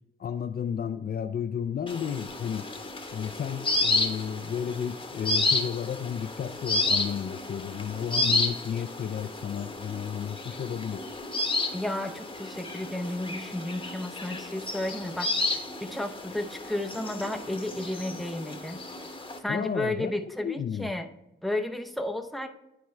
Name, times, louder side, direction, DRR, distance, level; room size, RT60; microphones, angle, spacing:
voice 1, 0.2-2.7 3.1-11.1 19.5-20.9, left 8 dB, 50° left, 9 dB, 0.4 m, -32 dB
sound 1, 1.9-19.4, left 2 dB, 25° left, 1.0 m, -31 dB
voice 2, 11.7-18.8 19.4-21.1 21.4-22.5, left 1 dB, ahead, 4 dB, 0.6 m, -33 dB
10.5 x 4.5 x 3.2 m, 0.89 s
cardioid pair, 95°, 20 cm